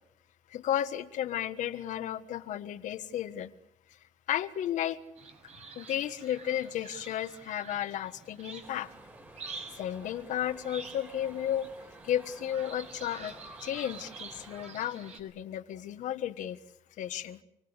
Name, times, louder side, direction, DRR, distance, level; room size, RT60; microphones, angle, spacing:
voice 1, 0.5-3.5 4.3-5.0 5.7-8.9 9.7-11.7 12.0-13.3 13.6-16.6 17.0-17.4, left 11 dB, 75° left, 10 dB, 1.5 m, -33 dB
sound 1, 5.2-15.2, right 4 dB, 60° right, 5.7 m, -48 dB
sound 2, 8.6-14.7, right 1 dB, 15° right, 3.5 m, -53 dB
28.5 x 19.0 x 8.2 m, 0.85 s
cardioid pair, 95°, 13 cm